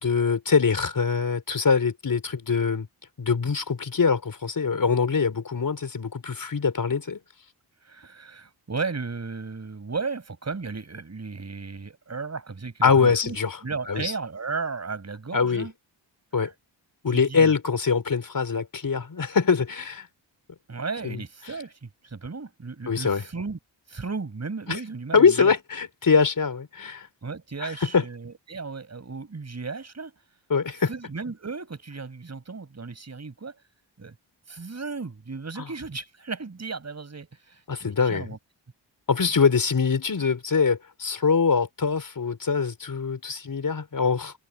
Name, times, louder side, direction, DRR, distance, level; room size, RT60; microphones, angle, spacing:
voice 1, 0.0-2.9 3.2-7.2 12.8-13.6 13.9-14.1 15.3-15.7 16.3-16.5 17.0-20.1 21.0-21.2 22.9-23.2 24.7-24.8 25.1-27.1 27.9-28.0 30.5-30.9 35.6-35.7 37.7-38.2 39.1-44.3, left 5 dB, 50° left, 5.1 m, -23 dB
voice 2, 7.8-15.7 16.4-16.5 17.1-17.5 20.7-23.6 23.9-25.5 27.2-30.1 30.9-33.6 34.0-34.1 34.5-38.4, right 4 dB, 35° right, 6.5 m, -35 dB
wide cardioid pair, 125°, 44 cm